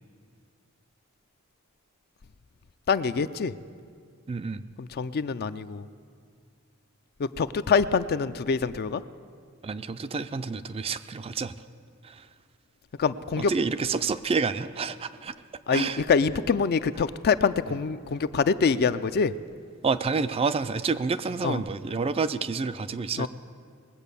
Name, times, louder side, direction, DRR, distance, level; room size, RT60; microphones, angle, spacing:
voice 1, 2.9-3.5 4.8-5.9 7.2-9.0 13.0-13.5 15.7-19.3 21.4-21.6 23.2-23.3, left 5 dB, 50° left, 13 dB, 0.4 m, -25 dB
voice 2, 4.3-4.6 9.6-11.5 12.0-12.3 13.4-15.3 15.7-16.0 19.8-23.3, right 4 dB, 25° right, 12 dB, 0.3 m, -29 dB
20.5 x 8.1 x 6.8 m, 2.2 s
head